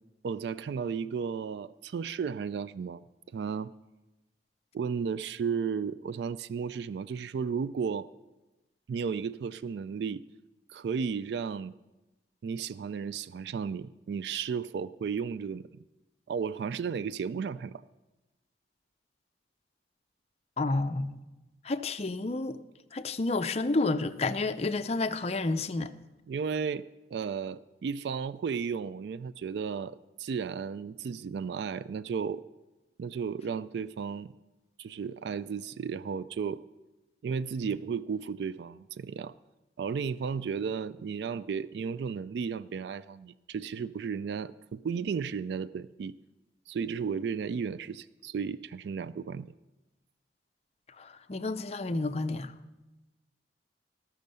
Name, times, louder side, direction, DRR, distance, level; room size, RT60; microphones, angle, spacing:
voice 1, 0.2-3.0 3.3-3.7 4.7-8.1 8.9-10.2 10.7-11.7 12.4-15.7 16.3-17.8 26.3-32.4 33.0-34.3 34.8-36.6 37.2-39.3 39.8-46.1 46.7-49.5, right 6 dB, 70° right, 0.3 m, -34 dB
voice 2, 20.6-21.2 21.6-22.6 22.9-25.9 51.0-52.5, left 3 dB, 35° left, 0.5 m, -30 dB
17.5 x 6.4 x 6.7 m
head